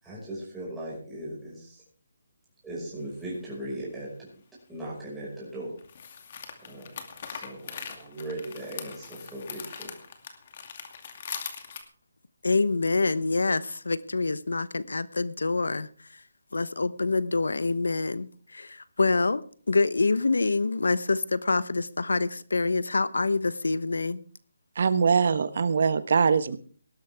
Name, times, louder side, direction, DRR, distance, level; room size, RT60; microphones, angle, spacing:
voice 1, 0.0-1.8 2.6-4.3 4.7-5.8 6.6-6.9 7.3-10.0, right 1 dB, 5° right, 5.6 m, -38 dB
sound 1, 3.1-3.2 5.8-11.8, left 6 dB, 40° left, 2.4 m, -41 dB
voice 2, 12.4-16.2 16.5-19.4 19.7-24.2, left 3 dB, 80° left, 1.0 m, -26 dB
voice 3, 24.7-26.6, right 5 dB, 55° right, 1.2 m, -22 dB
19.0 x 12.5 x 3.5 m
figure-of-eight pair, 160°, 0 cm